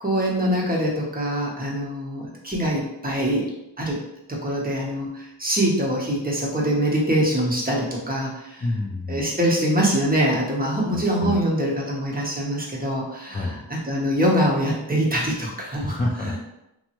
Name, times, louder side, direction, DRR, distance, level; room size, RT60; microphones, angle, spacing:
voice 1, 0.0-3.5 3.8-4.0 4.3-8.6 9.1-13.5 13.8-15.9, equal, 20° right, -4 dB, 0.8 m, -24 dB
voice 2, 8.6-9.3 10.9-11.4 13.3-13.6 15.8-16.4, left 2 dB, 20° left, -3 dB, 0.3 m, -28 dB
3.2 x 2.0 x 2.8 m, 0.89 s
wide cardioid pair, 75°, 47 cm